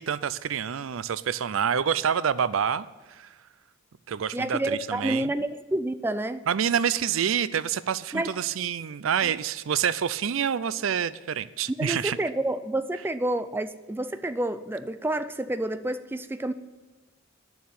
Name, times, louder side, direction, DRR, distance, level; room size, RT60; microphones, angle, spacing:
voice 1, 0.0-3.3 4.1-5.3 6.5-12.2, right 8 dB, 75° right, 16 dB, 0.5 m, -27 dB
voice 2, 4.3-6.4 8.1-8.4 9.2-9.3 11.7-16.5, right 1 dB, 10° right, 11 dB, 0.4 m, -29 dB
10.5 x 7.0 x 9.2 m, 1.3 s
head